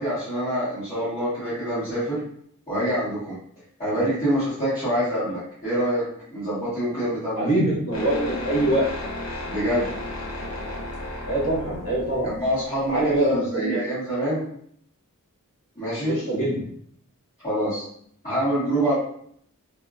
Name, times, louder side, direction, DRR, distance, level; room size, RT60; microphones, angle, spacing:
voice 1, 0.0-2.2 2.7-3.4 3.8-6.0 6.3-7.5 9.5-9.9 12.2-14.5 15.7-16.2 17.4-17.8 18.2-18.9, right 1 dB, 30° left, -15 dB, 1.4 m, -25 dB
voice 2, 7.3-8.9 11.3-12.3 12.8-13.8 16.1-16.6, right 1 dB, 80° left, -7 dB, 1.4 m, -24 dB
sound 1, 7.9-13.3, left 1 dB, 65° left, 0.7 m, -34 dB
2.8 x 2.5 x 2.3 m, 0.65 s
head